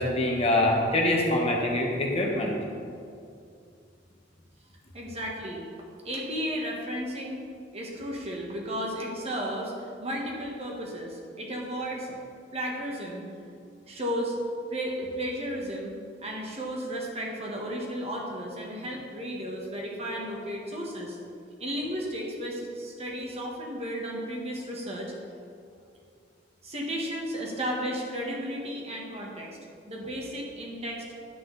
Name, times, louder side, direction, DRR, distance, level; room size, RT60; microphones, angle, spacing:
voice 1, 0.0-2.5, left 1 dB, 35° left, -1 dB, 1.2 m, -24 dB
voice 2, 4.9-5.7 6.0-7.4 7.7-12.2 12.5-13.3 13.9-14.3 14.7-21.2 21.6-25.1 26.6-29.6 29.9-31.0, equal, 35° right, -1 dB, 1.4 m, -34 dB
9.8 x 7.7 x 4.0 m, 2.4 s
head